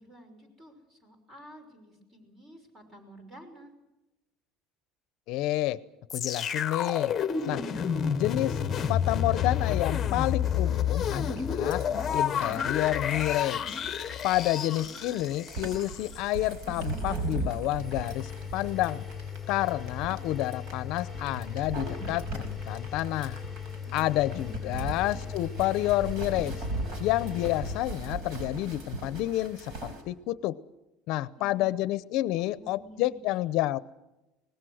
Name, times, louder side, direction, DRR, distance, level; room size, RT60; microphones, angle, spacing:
voice 1, 0.0-3.7 23.8-25.0 31.4-32.0 32.5-33.4, equal, 25° right, 7 dB, 5.8 m, -51 dB
voice 2, 5.3-5.8 6.1-7.1 7.5-7.6 8.1-8.6 8.9-11.8 12.1-13.8 14.2-19.1 19.5-23.4 23.9-26.6 27.0-30.6 31.1-33.8, left 15 dB, 60° left, 17 dB, 0.7 m, -29 dB
sound 1, 6.1-16.2 16.8-16.9, left 8 dB, 25° left, 1.1 m, -29 dB
sound 2, 11.4-30.0, right 2 dB, 60° right, 5.4 m, -38 dB
Engine, 17.8-27.8, left 7 dB, ahead, 3.5 m, -39 dB
24.5 x 19.5 x 6.4 m, 0.98 s
cardioid pair, 150°, 0 cm